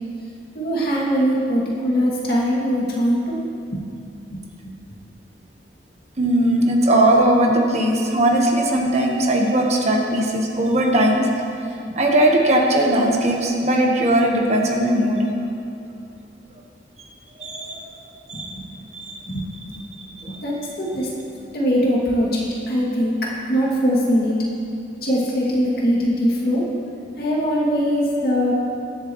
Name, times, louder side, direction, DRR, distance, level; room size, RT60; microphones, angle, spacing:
voice 1, 0.5-3.4 3.7-3.8 4.3-4.7 18.5-18.6 19.3-19.7 20.3-21.1 21.5-23.1 23.5-24.3 25.0-26.6 27.2-28.5, equal, 55° left, -5 dB, 2.4 m, -21 dB
voice 2, 6.2-11.2 11.7-15.2 17.4-17.8 18.3-18.5 18.9-19.2 20.0-20.4, right 1 dB, 35° right, 0 dB, 1.2 m, -19 dB
21.0 x 7.9 x 3.1 m, 2.6 s
head